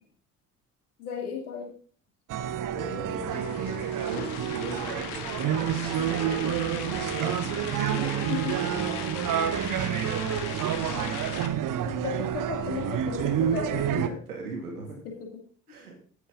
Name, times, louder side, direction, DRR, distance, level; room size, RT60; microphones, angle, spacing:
voice 1, 1.0-1.7 8.3-8.6 10.9-11.1 11.9-14.1 14.7-14.8 15.0-15.4, left 6 dB, 75° left, 3 dB, 2.6 m, -35 dB
sound 1, 2.3-14.1, right 9 dB, 45° right, 1.2 m, -29 dB
voice 2, 2.7-9.9 10.5-10.9 11.8-12.0 13.9-15.0 15.7-15.9, right 3 dB, 80° right, 1 dB, 2.7 m, -39 dB
sound 2, 3.3-11.5, left 10 dB, 60° left, 1.8 m, -39 dB
14.5 x 11.0 x 3.9 m, 0.44 s
figure-of-eight pair, 50°, 45 cm